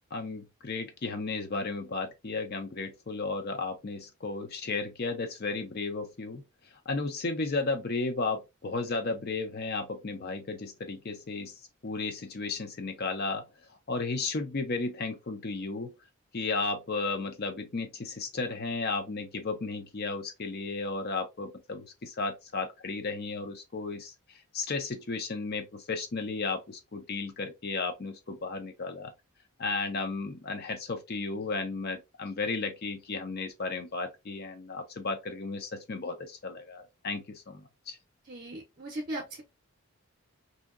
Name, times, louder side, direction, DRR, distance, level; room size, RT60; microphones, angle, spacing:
voice 1, 0.1-6.4 6.9-11.5 11.8-13.4 13.9-15.9 16.3-24.1 24.5-29.1 29.6-38.0, left 3 dB, 45° left, 0.5 m, -34 dB
voice 2, 38.2-39.4, right 1 dB, 40° right, 0.6 m, -38 dB
2.8 x 2.7 x 2.4 m
head